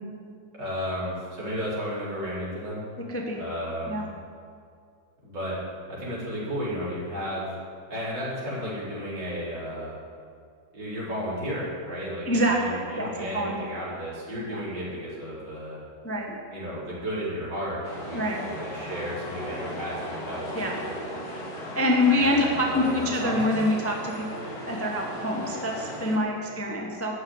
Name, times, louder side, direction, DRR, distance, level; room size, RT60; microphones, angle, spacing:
voice 1, 0.6-2.8 3.3-4.1 5.2-5.5 5.9-7.5 7.9-10.0 10.7-15.8 16.5-20.9 22.2-23.4, equal, 60° right, -8 dB, 4.8 m, -33 dB
voice 2, 3.1-3.4 3.9-4.1 12.3-13.1 13.3-13.5 14.5-14.6 16.0-16.4 18.1-18.4 20.5-20.7 21.7-27.1, left 1 dB, 10° left, -1 dB, 1.0 m, -26 dB
sound 1, 17.8-26.2, equal, 60° left, 2.4 m, -37 dB
12.5 x 6.7 x 9.6 m, 2.3 s
omnidirectional pair, 2.1 m